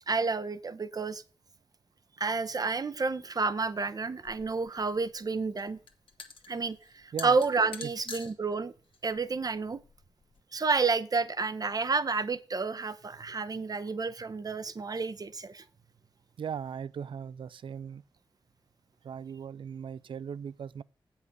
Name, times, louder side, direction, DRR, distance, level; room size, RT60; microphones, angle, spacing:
voice 1, 0.1-1.2 2.2-5.8 6.5-8.7 9.0-9.8 10.5-15.6, right 4 dB, 45° right, 0.7 m, -30 dB
sound 1, 4.2-10.4, left 5 dB, 80° left, 1.2 m, -48 dB
voice 2, 16.4-18.0 19.0-20.8, right 7 dB, 70° right, 0.3 m, -38 dB
8.1 x 5.5 x 6.2 m
cardioid pair, 55°, 9 cm